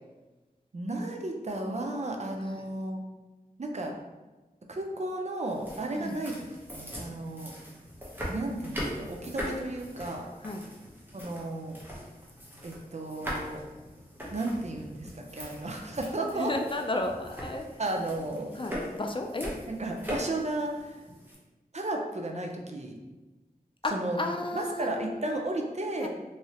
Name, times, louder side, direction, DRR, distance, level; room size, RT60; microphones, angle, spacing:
voice 1, 0.7-3.0 3.6-3.9 4.7-6.5 6.7-7.5 8.3-10.3 11.1-11.8 12.6-13.6 14.3-16.5 17.8-18.5 19.7-21.0 21.7-22.9 23.9-24.2 24.5-26.1, right 2 dB, 45° right, 2 dB, 0.5 m, -33 dB
sound 1, 5.5-21.3, equal, 10° right, 0.9 m, -41 dB
voice 2, 16.4-17.6 18.6-19.5 23.8-25.2 26.0-26.1, left 2 dB, 35° left, 3 dB, 0.3 m, -33 dB
3.1 x 2.7 x 2.8 m, 1.2 s
wide cardioid pair, 50°, 16 cm